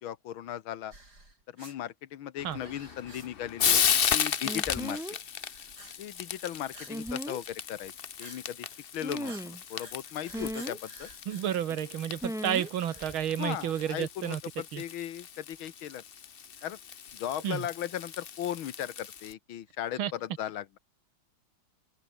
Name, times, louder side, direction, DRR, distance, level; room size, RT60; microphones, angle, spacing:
voice 1, 0.0-0.9 1.5-3.8 4.1-5.0 6.0-7.9 8.2-8.7 8.9-11.1 13.4-16.0 16.6-16.8 17.1-20.8, left 11 dB, 80° left, 1.9 m, -37 dB
sound 1, 0.9-1.8 2.5-3.5 3.9-4.1 4.4-5.1 5.3-6.0 6.2-7.0 7.3-7.6 8.2-8.4 8.7-8.8 9.2-12.1 12.5-13.3 13.7-14.5 14.8-14.9 15.5-15.6 16.6-17.9, right 2 dB, 50° right, 8.1 m, -52 dB
Frying (food), 2.4-19.3, left 8 dB, 65° left, 0.5 m, -35 dB
sound 2, 4.4-5.2 6.9-7.4 9.0-9.6 10.3-10.8 12.2-12.7 13.0-13.2, equal, ahead, 1.0 m, -36 dB
voice 2, 11.3-14.4 14.7-14.8 17.4-17.7 20.0-20.1, right 10 dB, 85° right, 2.1 m, -31 dB
open air
omnidirectional pair, 2.2 m